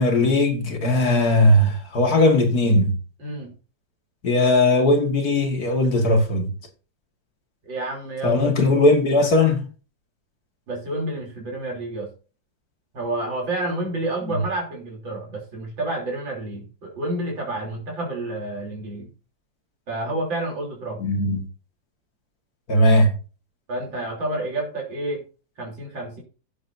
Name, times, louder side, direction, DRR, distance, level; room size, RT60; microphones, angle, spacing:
voice 1, 0.0-2.9 4.2-6.5 8.2-9.6 21.0-21.4 22.7-23.1, left 1 dB, 55° left, 2.3 m, -18 dB
voice 2, 3.2-3.5 7.6-8.8 10.7-12.1 12.9-19.1 19.9-21.0 23.7-25.2 25.6-26.2, right 2 dB, 85° right, 4.1 m, -29 dB
15.5 x 7.5 x 2.7 m
omnidirectional pair, 2.0 m